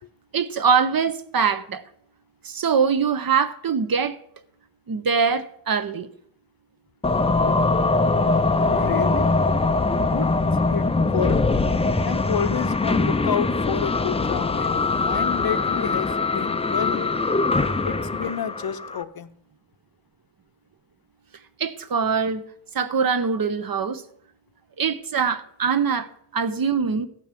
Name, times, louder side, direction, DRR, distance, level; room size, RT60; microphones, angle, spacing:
voice 1, 0.3-1.8 2.4-4.2 4.9-6.1 21.6-22.4 22.7-24.0 24.8-27.1, right 6 dB, 50° right, 0.8 m, -23 dB
sound 1, 7.0-19.0, left 3 dB, 15° left, 0.4 m, -22 dB
voice 2, 8.7-9.3 10.1-10.3 10.7-11.4 12.0-17.2 17.8-19.3, left 8 dB, 50° left, 0.7 m, -29 dB
14.5 x 5.3 x 7.3 m
wide cardioid pair, 145°, 46 cm